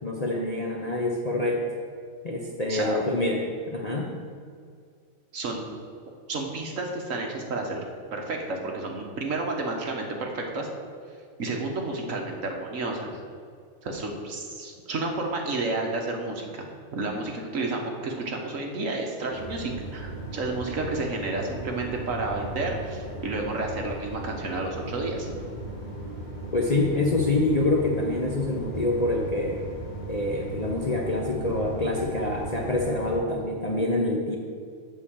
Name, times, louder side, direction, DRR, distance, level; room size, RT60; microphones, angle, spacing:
voice 1, 0.0-1.6 2.2-3.4 3.7-4.1 26.5-29.6 30.1-34.3, left 2 dB, 35° left, -1 dB, 0.7 m, -26 dB
voice 2, 2.7-3.0 5.3-5.6 6.3-7.8 8.1-10.7 11.4-13.1 13.8-16.6 16.9-25.3, right 2 dB, 65° right, 1 dB, 1.5 m, -31 dB
sound 1, 19.3-33.2, right 2 dB, 30° right, 2.6 m, -37 dB
8.1 x 4.9 x 7.2 m, 2.2 s
omnidirectional pair, 1.5 m